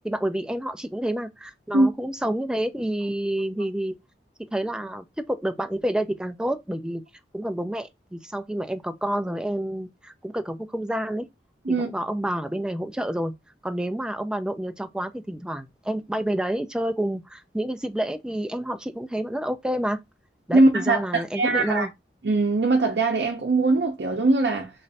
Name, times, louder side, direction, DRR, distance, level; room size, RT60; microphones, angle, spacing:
voice 1, 0.0-3.9 4.5-7.0 7.3-11.3 11.7-13.3 13.6-20.0 20.5-21.9, right 1 dB, 5° right, 0.4 m, -29 dB
voice 2, 20.5-21.9 22.2-24.7, right 2 dB, 70° right, 0.7 m, -21 dB
3.1 x 2.5 x 4.0 m
head